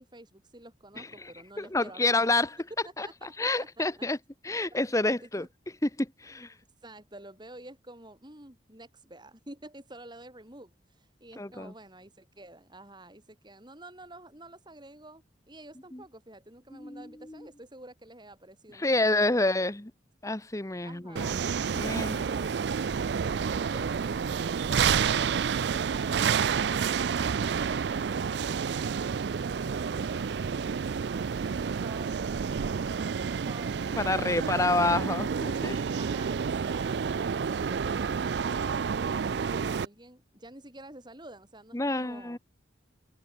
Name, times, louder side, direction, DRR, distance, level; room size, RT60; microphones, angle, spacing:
voice 1, 0.0-2.2 2.8-4.1 5.1-5.5 6.8-19.3 20.8-21.3 36.0-42.4, right 1 dB, 25° right, 5.1 m, -50 dB
voice 2, 1.0-1.3 1.6-2.5 3.0-3.1 3.4-4.2 4.4-5.5 5.8-6.5 11.4-11.7 15.9-16.0 16.7-17.5 18.8-19.9 20.2-21.4 21.7-22.2 34.0-35.8 41.7-42.4, left 2 dB, 15° left, 1.0 m, -28 dB
sound 1, 21.2-39.9, right 6 dB, 65° right, 0.4 m, -29 dB
head